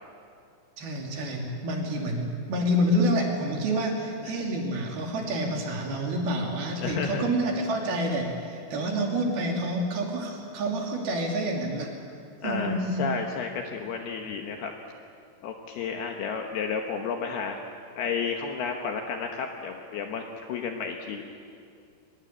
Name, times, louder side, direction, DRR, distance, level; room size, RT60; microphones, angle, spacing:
voice 1, 0.8-11.9 12.4-13.0, equal, 55° right, 1 dB, 4.2 m, -28 dB
voice 2, 6.8-7.3 12.4-14.7 15.4-17.6 18.0-21.2, left 6 dB, 70° left, 3 dB, 2.6 m, -32 dB
23.0 x 20.5 x 8.6 m, 2.5 s
omnidirectional pair, 5.7 m